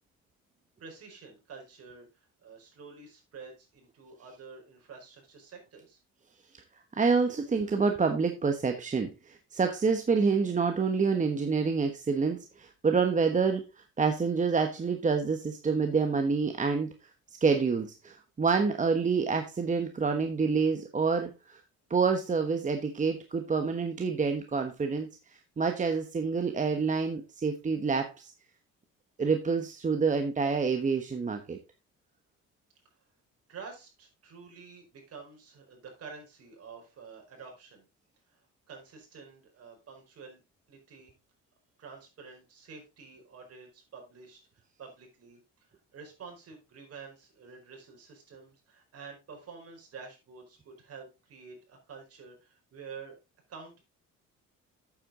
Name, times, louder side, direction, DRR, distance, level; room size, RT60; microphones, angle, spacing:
voice 1, 0.8-6.0 33.5-37.9 38.3-40.4 40.7-41.1 41.8-53.2 53.5-53.8, right 5 dB, 55° right, 2 dB, 4.9 m, -49 dB
voice 2, 6.9-16.9 17.4-21.6 21.9-25.1 25.6-28.3 29.2-31.6, right 5 dB, 25° right, 5 dB, 1.2 m, -27 dB
8.6 x 8.0 x 3.8 m, 0.27 s
cardioid pair, 100°, 30 cm